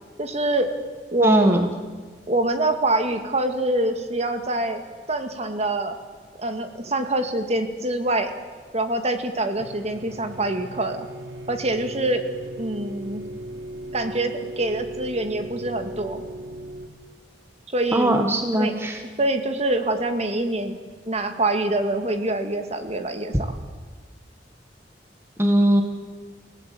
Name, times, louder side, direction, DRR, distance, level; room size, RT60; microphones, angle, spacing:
voice 1, 0.2-0.7 1.1-1.6 2.3-4.8 5.1-5.9 6.4-8.3 8.7-11.1 11.5-12.3 12.6-13.2 13.9-16.2 17.7-18.2 18.5-18.8 19.2-20.8 21.1-23.6, right 2 dB, 40° right, 7 dB, 2.1 m, -25 dB
voice 2, 1.2-1.7 17.9-19.0 25.4-25.8, right 1 dB, 15° right, 5 dB, 1.6 m, -20 dB
sound 1, 9.6-16.9, right 1 dB, 90° right, 1.9 m, -37 dB
28.0 x 17.5 x 8.7 m, 1.5 s
head